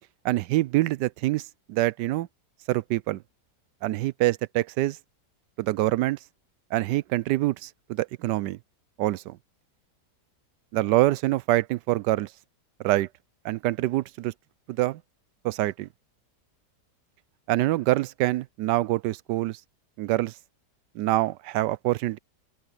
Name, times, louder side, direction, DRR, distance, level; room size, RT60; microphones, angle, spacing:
voice 1, 0.2-2.3 2.7-3.2 3.8-5.0 5.6-6.2 6.7-8.6 9.0-9.4 10.7-12.3 12.8-13.1 13.4-14.3 14.7-15.0 15.4-15.9 17.5-19.6 20.0-20.3 20.9-22.2, right 16 dB, 90° right, 1.2 m, -25 dB
open air
omnidirectional pair, 1.8 m